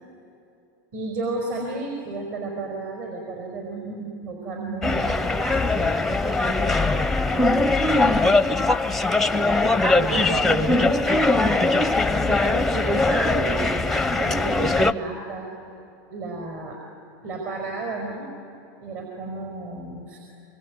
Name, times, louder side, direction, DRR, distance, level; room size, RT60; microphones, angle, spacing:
voice 1, 0.9-8.2 10.0-11.2 12.1-15.5 16.1-16.8 17.2-18.3 18.8-20.2, right 3 dB, 55° right, 2 dB, 4.9 m, -33 dB
sound 1, 4.8-14.9, left 2 dB, ahead, 0.6 m, -21 dB
25.0 x 23.0 x 9.6 m, 3.0 s
supercardioid pair, 140°, 11 cm